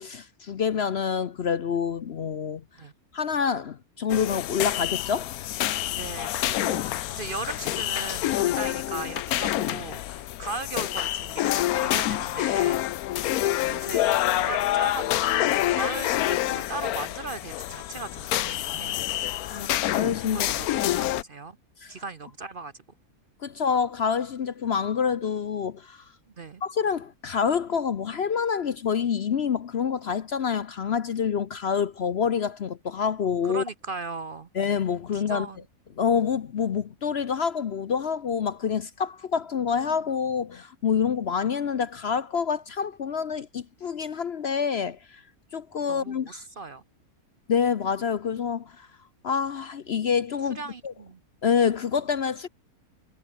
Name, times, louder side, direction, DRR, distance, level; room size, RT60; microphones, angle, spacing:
voice 1, 0.0-2.6 3.1-5.3 19.4-20.5 20.8-21.1 21.8-21.9 23.4-26.0 26.6-33.6 34.5-35.5 36.0-45.2 45.5-46.4 47.5-48.9 49.2-50.9 51.4-52.5, left 7 dB, 50° left, 0.9 m, -27 dB
sound 1, 4.1-21.2, left 14 dB, 80° left, 1.1 m, -27 dB
voice 2, 6.0-12.8 13.1-13.3 13.6-19.0 20.3-21.6 21.9-22.8 26.4-26.6 33.4-34.5 35.1-35.6 45.9-46.8 50.5-51.2, right 3 dB, 45° right, 0.9 m, -38 dB
omnidirectional pair, 1.6 m